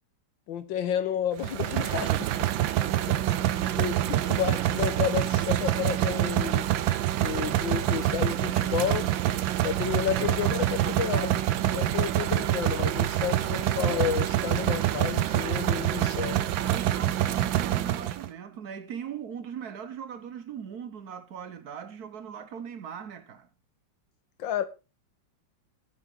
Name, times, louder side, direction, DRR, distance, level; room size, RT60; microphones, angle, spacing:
voice 1, 0.5-2.5 3.8-6.7 7.2-9.1 9.6-11.4 11.7-16.4 24.4-24.6, left 9 dB, 80° left, 1.7 m, -31 dB
sound 1, 1.4-18.3, right 12 dB, 85° right, 1.5 m, -26 dB
voice 2, 16.6-23.5, right 8 dB, 60° right, 1.3 m, -40 dB
10.5 x 9.6 x 3.9 m
omnidirectional pair, 2.1 m